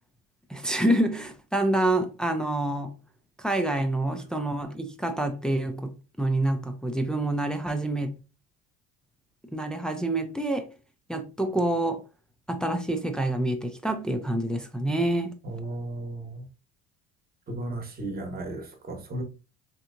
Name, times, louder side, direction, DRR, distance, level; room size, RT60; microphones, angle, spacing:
voice 1, 0.5-3.0 3.4-8.1 9.5-10.7 11.1-12.0 12.5-15.4, right 1 dB, 5° left, 0.4 m, -27 dB
voice 2, 15.4-16.4 17.5-19.2, right 2 dB, 30° right, 1.0 m, -35 dB
3.3 x 2.8 x 2.5 m
supercardioid pair, 100°, 31 cm